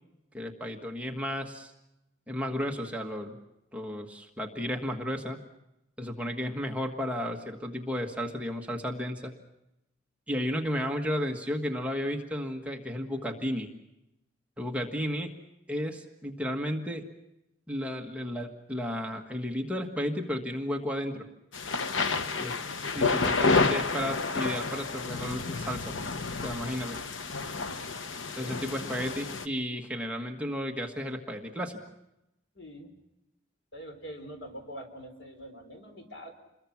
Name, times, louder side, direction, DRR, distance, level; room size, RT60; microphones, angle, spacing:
voice 1, 0.3-1.7 2.3-3.4 3.7-5.4 6.0-9.3 10.3-13.7 14.6-15.3 15.7-17.0 17.7-21.2 22.4-22.5 22.8-26.0 26.4-27.0 28.3-31.8, equal, 5° right, 1 dB, 1.5 m, -33 dB
sound 1, 21.5-29.5, left 4 dB, 90° left, 1.0 m, -30 dB
voice 2, 22.1-22.8 28.4-28.8 32.6-32.9 33.7-36.3, equal, 70° left, 5 dB, 3.9 m, -45 dB
28.5 x 21.5 x 6.0 m, 0.89 s
head